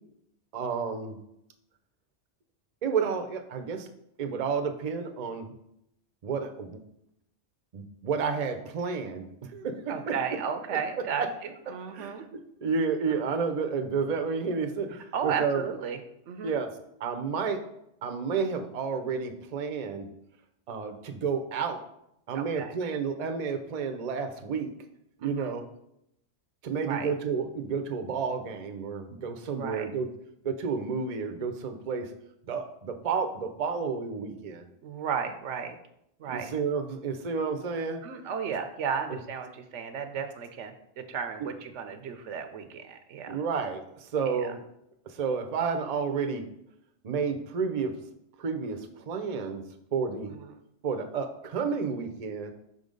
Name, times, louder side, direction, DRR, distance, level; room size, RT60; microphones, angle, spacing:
voice 1, 0.5-1.2 2.8-3.9 4.2-5.5 6.2-6.8 7.7-9.3 9.5-10.1 11.2-11.3 11.9-15.6 16.4-16.7 17.0-17.6 18.0-20.1 20.7-21.8 22.3-24.7 25.2-25.6 26.6-30.1 30.4-32.1 32.5-34.7 36.2-38.0 41.4-41.5 43.3-44.6 45.1-46.4 47.0-47.9 48.4-49.6 49.9-50.3 50.8-52.5, right 5 dB, 45° right, 6 dB, 0.6 m, -31 dB
voice 2, 9.9-12.3 13.1-13.2 15.1-16.0 16.3-16.6 22.3-22.8 25.2-25.6 26.9-27.1 29.6-29.9 34.8-35.8 36.2-36.5 38.0-43.4 44.3-44.5 50.3-50.5, right 7 dB, 85° right, 8 dB, 1.0 m, -34 dB
5.6 x 3.9 x 5.1 m, 0.78 s
omnidirectional pair, 1.2 m